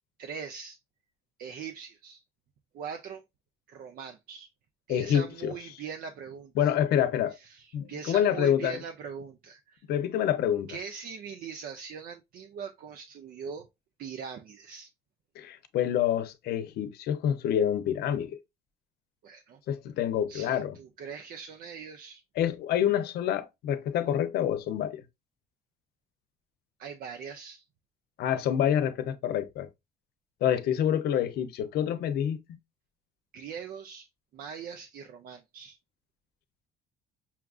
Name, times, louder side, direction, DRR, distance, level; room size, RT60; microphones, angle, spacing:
voice 1, 0.2-0.8 1.4-2.2 2.7-3.2 3.7-4.5 4.9-6.7 7.3-9.8 10.7-13.7 14.0-14.9 19.2-19.6 20.3-22.2 26.8-27.6 33.3-34.1 34.3-35.8, right 6 dB, 60° right, 0.5 m, -41 dB
voice 2, 4.9-5.5 6.6-7.4 7.7-8.8 9.9-10.7 15.4-18.4 19.7-20.8 22.4-25.0 28.2-29.7 30.4-32.4, left 10 dB, 70° left, 0.7 m, -27 dB
5.7 x 2.4 x 2.3 m
cardioid pair, 110°, 17 cm